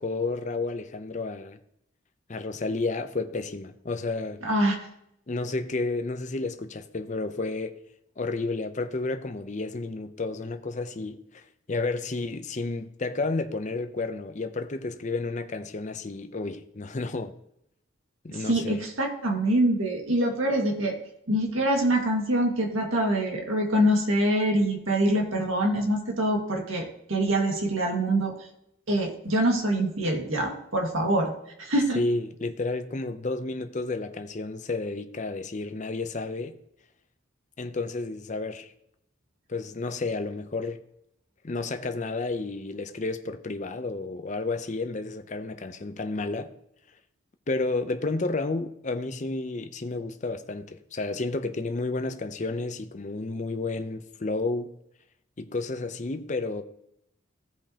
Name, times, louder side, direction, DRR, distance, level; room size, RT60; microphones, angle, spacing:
voice 1, 0.0-1.6 2.3-4.4 5.3-7.8 8.2-17.3 18.2-18.8 31.9-36.6 37.6-38.7 39.5-40.8 41.4-46.5 47.5-54.7 55.4-56.6, left 3 dB, 35° left, 0.6 m, -31 dB
voice 2, 4.4-4.8 18.3-21.0 21.3-28.5 28.9-31.3 31.6-32.0, right 1 dB, 80° right, 1.8 m, -25 dB
15.5 x 5.2 x 2.9 m
head